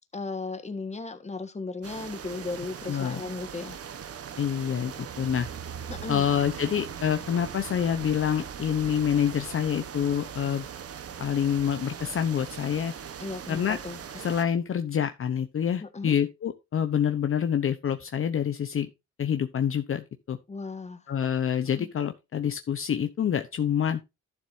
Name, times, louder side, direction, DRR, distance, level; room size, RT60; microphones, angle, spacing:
voice 1, 0.1-3.8 5.9-6.3 13.2-14.0 15.8-16.1 20.5-21.0 21.8-21.9, left 3 dB, 20° left, 1.6 m, -36 dB
sound 1, 1.8-14.4, right 8 dB, 50° right, 1.2 m, -40 dB
voice 2, 2.9-3.2 4.4-5.5 6.1-10.6 11.2-12.9 13.5-13.8 14.2-18.9 19.2-20.4 21.1-24.0, left 8 dB, 45° left, 0.9 m, -27 dB
12.0 x 7.1 x 2.7 m
cardioid pair, 90°, 30 cm